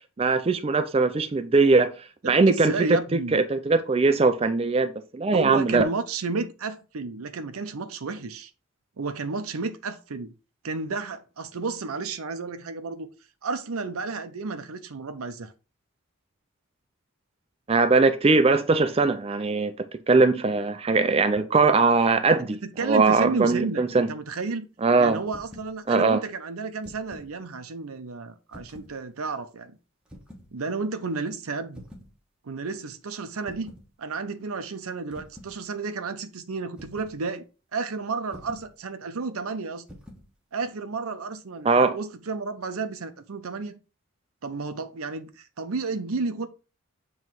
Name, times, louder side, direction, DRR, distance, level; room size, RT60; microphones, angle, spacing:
voice 1, 0.2-2.7 3.1-5.9 17.7-24.1 24.8-25.2 25.9-26.2 41.6-42.0, right 3 dB, 25° right, 0.4 m, -21 dB
voice 2, 2.2-3.4 5.3-8.5 9.0-10.3 10.6-13.1 13.4-15.5 22.4-24.7 25.0-29.8 30.5-31.8 32.4-33.7 34.0-37.4 37.7-39.9 40.5-43.8 44.4-46.5, right 4 dB, 85° right, 0.6 m, -32 dB
sound 1, 25.3-25.7 26.6-27.3 28.5-29.0 30.1-30.5 31.7-32.1 33.5-33.9 35.1-35.6 36.8-37.2 38.3-38.7 39.9-40.3, equal, 5° right, 1.2 m, -46 dB
7.4 x 3.1 x 4.5 m
head